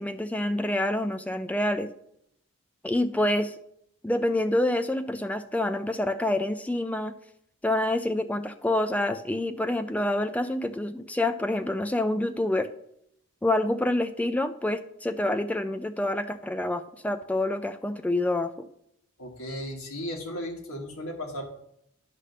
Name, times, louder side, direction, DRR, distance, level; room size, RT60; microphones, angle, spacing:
voice 1, 0.0-1.9 2.8-3.6 4.0-7.1 7.6-12.7 13.4-18.5, left 1 dB, 5° left, 9 dB, 0.3 m, -27 dB
voice 2, 19.2-21.4, equal, 80° left, 0 dB, 1.4 m, -35 dB
9.9 x 3.3 x 6.6 m, 0.75 s
head